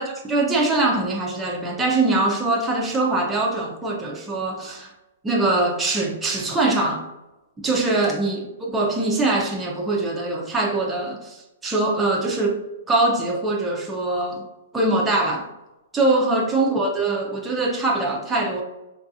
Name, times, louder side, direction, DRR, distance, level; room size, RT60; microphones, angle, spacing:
voice 1, 0.0-4.9 5.2-7.0 7.6-14.4 14.7-15.5 15.9-18.6, right 2 dB, 5° right, -2 dB, 0.3 m, -23 dB
4.6 x 2.3 x 2.6 m, 0.99 s
hypercardioid pair, 175°, 0 cm